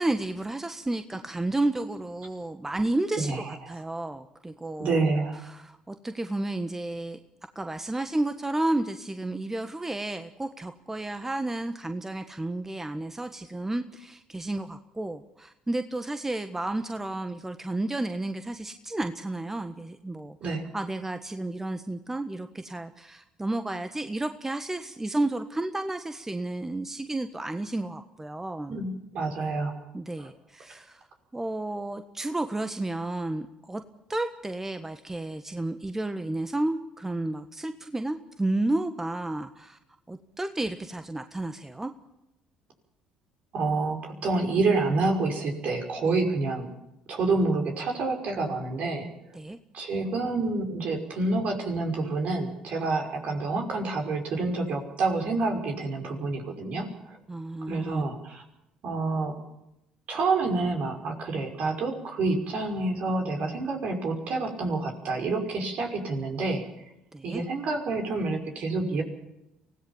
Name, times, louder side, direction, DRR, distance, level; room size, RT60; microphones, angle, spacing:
voice 1, 0.0-3.3 3.7-5.0 5.4-7.2 7.5-28.8 29.9-31.1 31.3-33.8 34.1-39.8 40.1-41.9 49.3-49.6 57.3-58.0 67.1-67.4, right 2 dB, 15° right, 8 dB, 1.4 m, -32 dB
voice 2, 3.2-3.6 4.8-5.4 20.4-20.6 28.7-28.9 29.1-29.7 30.2-30.3 43.5-46.7 47.1-49.1 49.7-57.2 57.7-58.4 58.8-59.4 60.1-66.7 67.2-69.0, right 3 dB, 55° right, 3 dB, 5.5 m, -28 dB
24.5 x 17.0 x 7.3 m, 0.88 s
hypercardioid pair, 60°, 3 cm